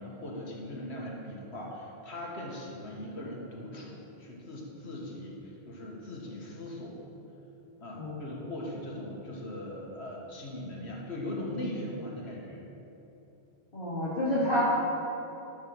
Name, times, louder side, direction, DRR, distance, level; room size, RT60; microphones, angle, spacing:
voice 1, 0.0-7.0 7.8-12.6, left 1 dB, 75° left, -2 dB, 1.8 m, -39 dB
voice 2, 13.7-14.6, equal, 55° left, -12 dB, 2.3 m, -29 dB
12.0 x 4.7 x 6.2 m, 2.9 s
omnidirectional pair, 1.1 m